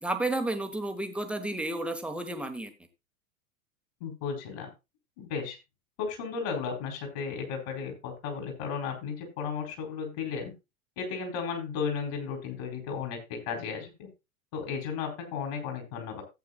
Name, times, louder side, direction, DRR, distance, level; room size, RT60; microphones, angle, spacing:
voice 1, 0.0-2.7, right 2 dB, 5° right, 6 dB, 1.1 m, -32 dB
voice 2, 4.0-4.7 5.2-5.6 6.0-10.5 11.0-14.1 14.5-16.2, left 6 dB, 50° left, 4 dB, 4.4 m, -34 dB
15.5 x 8.5 x 2.3 m, 0.24 s
figure-of-eight pair, 90°, 42 cm